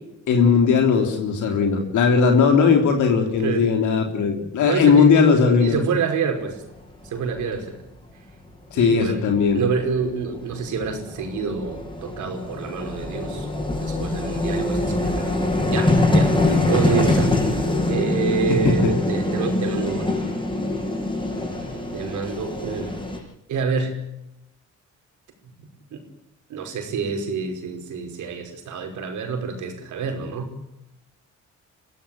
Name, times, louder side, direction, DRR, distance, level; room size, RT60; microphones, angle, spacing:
voice 1, 0.3-5.8 8.7-9.6 16.4-16.7 18.6-18.7, left 5 dB, 75° left, 3 dB, 3.6 m, -18 dB
voice 2, 4.6-5.1 5.6-6.6 7.0-7.7 8.7-9.2 9.5-13.5 13.8-15.3 15.7-20.1 21.9-23.0 23.5-24.0 25.9-26.0 26.5-30.5, right 5 dB, 75° right, 5 dB, 5.4 m, -27 dB
Vehicle, 7.1-7.2 7.4-7.5 9.5-9.6 9.8-23.2, left 2 dB, 15° left, 7.8 m, -24 dB
23.5 x 16.0 x 8.7 m, 0.86 s
cardioid pair, 90°, 30 cm